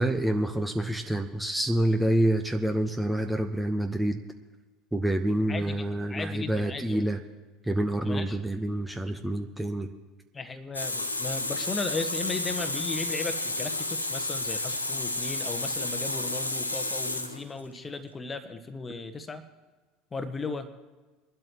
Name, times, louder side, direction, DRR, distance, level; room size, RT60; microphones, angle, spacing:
voice 1, 0.0-4.2 4.9-7.2 7.6-9.9, right 1 dB, 5° right, 5 dB, 1.0 m, -27 dB
voice 2, 6.1-7.0 8.0-8.4 10.3-19.4 20.1-20.7, left 3 dB, 20° left, 9 dB, 1.3 m, -36 dB
Water tap faucet, 10.7-17.8, left 2 dB, 90° left, 1.0 m, -31 dB
22.5 x 12.0 x 3.0 m, 1.3 s
figure-of-eight pair, 70°, 0 cm